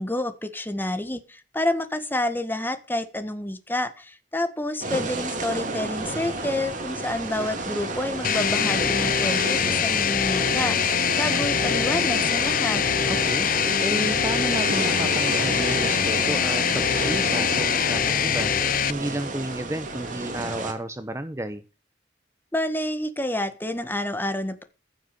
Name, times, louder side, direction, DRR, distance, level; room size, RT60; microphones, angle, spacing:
voice 1, 0.0-12.8 22.5-24.6, left 1 dB, 10° left, 10 dB, 1.6 m, -29 dB
sound 1, 4.8-20.7, right 2 dB, 45° right, 3.3 m, -31 dB
sound 2, 8.2-18.9, left 8 dB, 50° left, 0.6 m, -24 dB
voice 2, 13.1-13.5 13.8-18.5 18.9-21.6, right 1 dB, 15° right, 11 dB, 0.8 m, -32 dB
15.5 x 6.7 x 6.8 m, 0.35 s
head